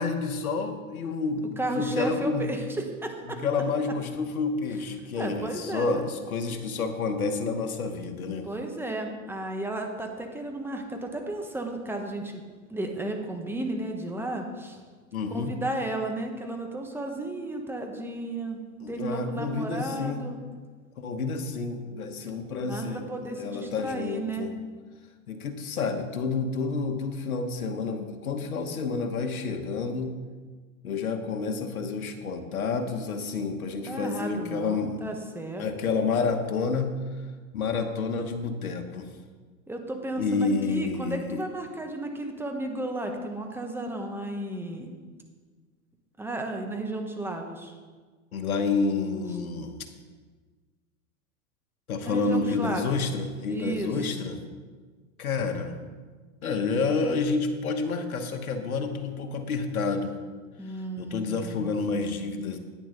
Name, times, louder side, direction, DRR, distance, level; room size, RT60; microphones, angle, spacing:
voice 1, 0.0-2.5 3.2-8.5 15.1-15.5 18.8-20.2 21.0-24.5 25.3-30.1 30.8-35.0 35.6-37.0 37.5-39.1 40.2-41.5 48.3-49.7 51.9-54.4 55.2-55.8 56.4-60.2 60.7-62.6, left 4 dB, 85° left, 5 dB, 1.2 m, -29 dB
voice 2, 1.6-3.4 5.2-6.0 8.4-12.4 12.7-14.8 15.3-18.6 18.9-20.4 22.6-24.5 33.8-35.7 39.7-44.9 46.2-47.7 52.0-52.8 53.4-54.2 60.6-61.7, right 2 dB, 5° right, 3 dB, 1.3 m, -33 dB
10.0 x 9.4 x 4.0 m, 1.4 s
hypercardioid pair, 105°, 42 cm